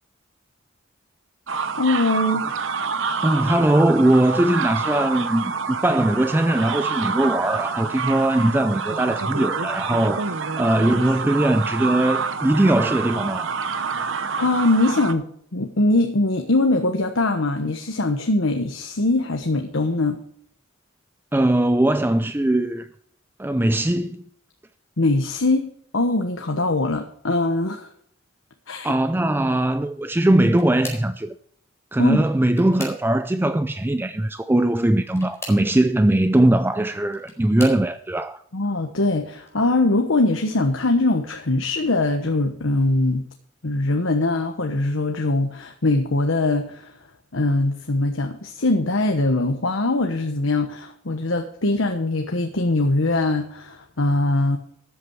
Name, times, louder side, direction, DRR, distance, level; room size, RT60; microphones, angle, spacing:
sound 1, 1.5-15.1, right 5 dB, 70° right, 1.0 m, -27 dB
voice 1, 1.8-2.4 14.4-15.3 15.5-20.2 25.0-27.9 28.7-28.9 32.0-32.2 38.5-43.3 43.6-46.9 47.3-54.6, left 2 dB, 75° left, 1.2 m, -22 dB
voice 2, 3.2-10.2 10.6-13.6 21.3-22.9 23.4-24.2 28.8-31.4 31.9-38.4, right 1 dB, 10° right, 0.4 m, -20 dB
sound 2, 30.1-31.2 32.1-33.4 35.0-35.7 36.8-37.9 38.6-39.0 39.4-39.5 40.8-40.9, left 1 dB, 15° left, 4.3 m, -39 dB
13.5 x 8.3 x 4.6 m
head